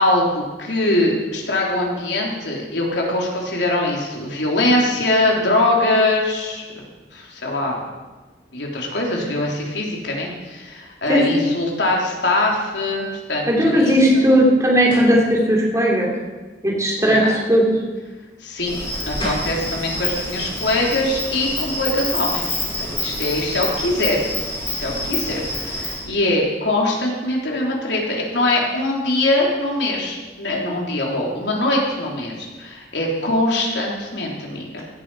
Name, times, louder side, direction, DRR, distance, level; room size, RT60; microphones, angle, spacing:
voice 1, 0.0-6.8 7.1-7.8 8.5-14.3 17.0-17.3 18.4-18.8 19.1-24.2 24.7-34.8, left 2 dB, 80° left, -1 dB, 3.4 m, -22 dB
voice 2, 11.1-11.5 13.5-16.1 16.6-17.6, equal, 20° right, -3 dB, 3.3 m, -16 dB
sound 1, 14.9-15.2 18.9-19.0 19.2-19.6, equal, 30° left, 5.8 m, -29 dB
Insect, 18.6-26.0, left 1 dB, 15° left, 5.7 m, -27 dB
16.5 x 12.0 x 4.8 m, 1.2 s
head